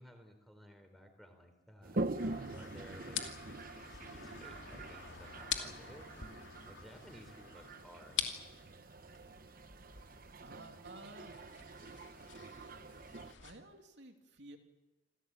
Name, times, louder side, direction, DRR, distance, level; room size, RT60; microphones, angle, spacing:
voice 1, 0.0-6.1 6.7-8.3, equal, ahead, 6 dB, 3.9 m, -57 dB
Toilet flush, 1.8-13.3, right 2 dB, 50° right, 0.9 m, -45 dB
sound 1, 2.2-13.6, left 8 dB, 75° left, 2.7 m, -46 dB
voice 2, 10.4-11.5 13.4-14.6, right 2 dB, 70° right, 4 dB, 2.9 m, -53 dB
27.5 x 16.5 x 8.9 m, 1.0 s
head